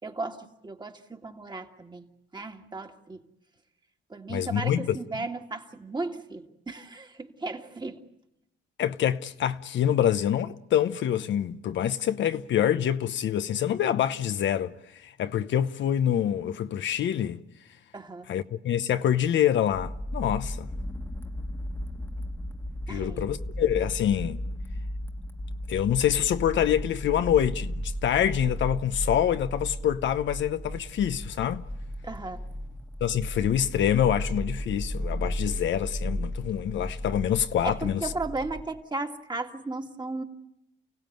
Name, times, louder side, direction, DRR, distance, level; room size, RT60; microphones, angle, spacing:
voice 1, 0.0-3.2 4.1-8.0 11.8-11.9 17.9-18.3 22.9-23.3 32.0-32.4 37.6-40.2, right 3 dB, 20° right, 2.0 m, -35 dB
voice 2, 4.3-5.0 8.8-17.4 18.3-20.7 22.9-24.4 25.7-31.6 33.0-38.0, left 10 dB, 70° left, 0.9 m, -26 dB
sound 1, 19.7-38.6, equal, 10° left, 1.5 m, -35 dB
30.0 x 16.0 x 9.2 m
cardioid pair, 90°, 20 cm